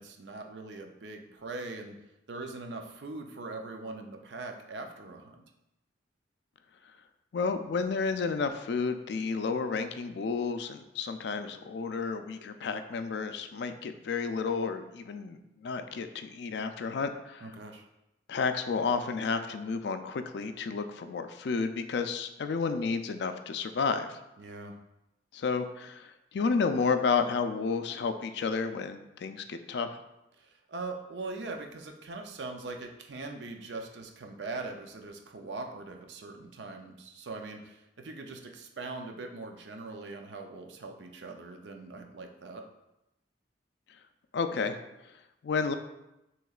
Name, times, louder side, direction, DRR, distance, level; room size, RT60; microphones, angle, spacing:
voice 1, 0.0-2.0 2.3-5.4 17.4-17.8 24.4-24.8 30.4-42.6, right 3 dB, 75° right, 4 dB, 0.5 m, -41 dB
voice 2, 7.3-17.5 18.3-24.2 25.3-30.0 44.3-44.8 45.4-45.7, left 5 dB, 65° left, 9 dB, 0.4 m, -31 dB
6.3 x 3.0 x 2.4 m, 0.91 s
head